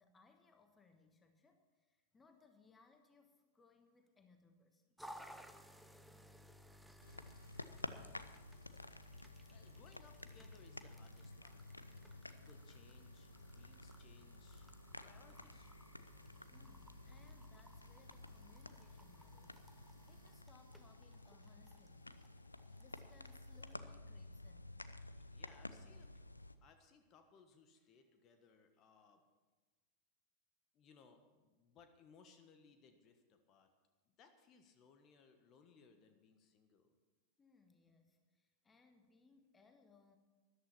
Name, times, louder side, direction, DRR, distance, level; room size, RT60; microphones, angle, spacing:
voice 1, 0.0-4.9 16.5-22.0 22.8-24.7 37.4-40.2, left 4 dB, 15° left, 6 dB, 1.3 m, -68 dB
sound 1, 5.0-23.8, equal, ahead, 0.8 m, -61 dB
sound 2, 7.0-26.6, left 2 dB, 85° left, 0.5 m, -53 dB
voice 2, 9.5-14.7 15.0-15.9 24.9-26.2 26.6-29.2 30.7-33.7 34.1-37.0, left 5 dB, 35° left, 7 dB, 1.3 m, -66 dB
Drum kit / Drum, 16.0-22.5, equal, 50° left, 3.4 m, -75 dB
13.0 x 11.5 x 5.9 m, 1.3 s
figure-of-eight pair, 90°, 0 cm